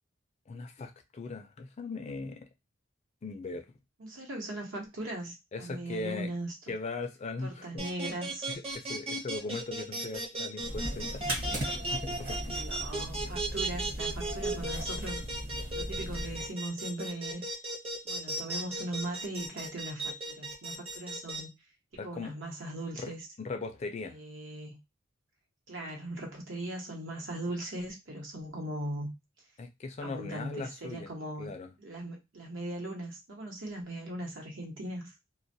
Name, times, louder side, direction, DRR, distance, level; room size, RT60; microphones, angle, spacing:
voice 1, 0.5-2.5 3.2-3.6 5.5-6.3 6.7-7.9 8.5-11.7 11.9-12.6 22.0-22.3 22.9-23.1 23.4-24.2 29.6-31.1 31.4-31.7, left 3 dB, 35° left, 0.3 m, -39 dB
voice 2, 4.0-6.7 7.4-8.5 12.5-15.2 15.7-17.5 18.0-21.5 22.0-23.2 24.0-24.8 25.7-29.1 30.0-31.5 31.8-35.1, right 1 dB, 70° right, 0.9 m, -39 dB
sound 1, 7.8-21.4, right 2 dB, 30° right, 0.7 m, -35 dB
sound 2, 10.6-16.5, equal, 45° right, 1.1 m, -37 dB
2.2 x 2.1 x 2.6 m
head